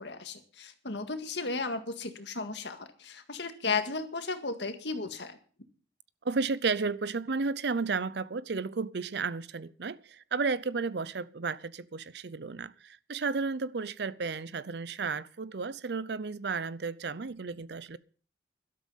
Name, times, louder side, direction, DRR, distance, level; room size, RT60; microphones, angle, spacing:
voice 1, 0.0-5.4, left 4 dB, 70° left, 1.8 m, -35 dB
voice 2, 6.2-18.0, right 4 dB, 65° right, 0.6 m, -33 dB
12.5 x 12.5 x 5.6 m
head